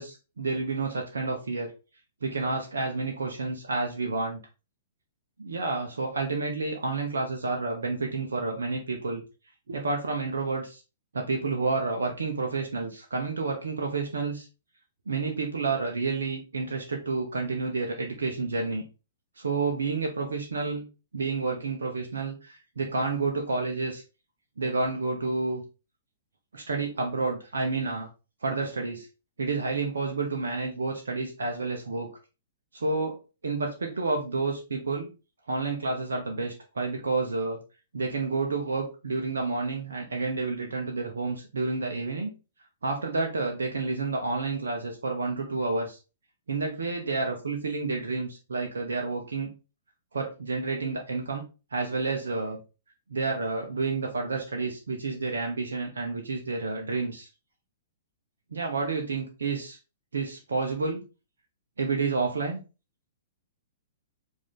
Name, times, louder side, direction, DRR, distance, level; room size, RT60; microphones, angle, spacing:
voice 1, 0.0-1.7 2.2-4.4 5.4-9.2 9.7-10.8 11.1-14.5 15.1-18.8 19.4-20.9 21.1-24.0 24.6-25.6 26.5-28.1 28.4-29.1 29.4-32.1 32.7-33.2 33.4-35.1 35.5-37.6 37.9-42.3 42.8-46.0 46.5-49.5 50.1-51.4 51.7-52.6 53.1-57.3 58.5-59.8 60.1-61.0 61.8-62.6, right 3 dB, 70° right, 2 dB, 0.7 m, -30 dB
4.9 x 2.7 x 3.6 m, 0.31 s
figure-of-eight pair, 110°, 0 cm